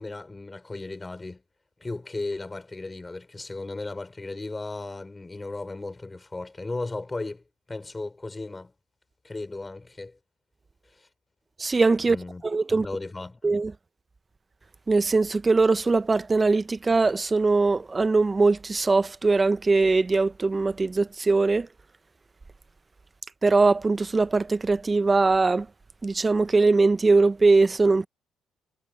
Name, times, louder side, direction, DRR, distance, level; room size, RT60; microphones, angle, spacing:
voice 1, 0.0-1.4 1.8-8.7 9.2-10.2 10.8-11.1 12.0-12.4 12.7-13.4, left 2 dB, 20° left, 3.5 m, -36 dB
voice 2, 11.6-12.2 12.4-12.9 13.4-13.7 14.9-21.7 23.4-25.7 26.0-28.1, right 3 dB, 25° right, 0.9 m, -21 dB
supercardioid pair, 70°, 0 cm